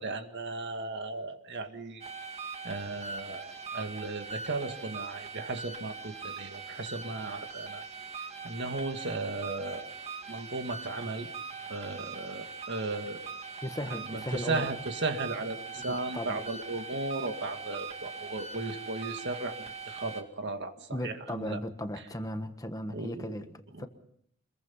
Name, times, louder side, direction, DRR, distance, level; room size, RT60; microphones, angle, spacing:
voice 1, 0.0-2.0 2.6-7.8 8.2-9.9 10.3-11.3 11.7-13.3 13.8-21.6 22.9-23.4 23.7-23.9, right 3 dB, 55° right, 1.9 m, -36 dB
sound 1, 2.0-20.2, right 4 dB, 30° right, 2.1 m, -41 dB
voice 2, 13.6-14.6 15.9-16.4 20.9-23.5 23.8-23.9, left 1 dB, 15° left, 1.4 m, -36 dB
25.5 x 22.0 x 5.6 m
head